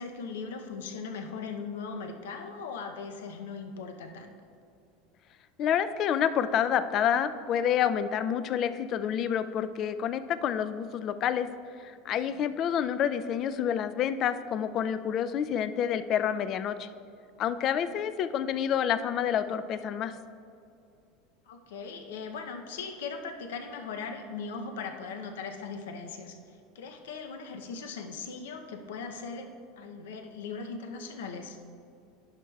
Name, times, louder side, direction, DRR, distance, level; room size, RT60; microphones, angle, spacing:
voice 1, 0.0-4.3 12.4-12.5 21.5-29.5 29.8-31.6, left 5 dB, 90° left, 5 dB, 0.6 m, -39 dB
voice 2, 5.6-11.5 11.8-16.9 17.4-20.1, left 9 dB, 45° left, 12 dB, 0.3 m, -28 dB
11.0 x 6.4 x 2.3 m, 2.5 s
supercardioid pair, 115°, 0 cm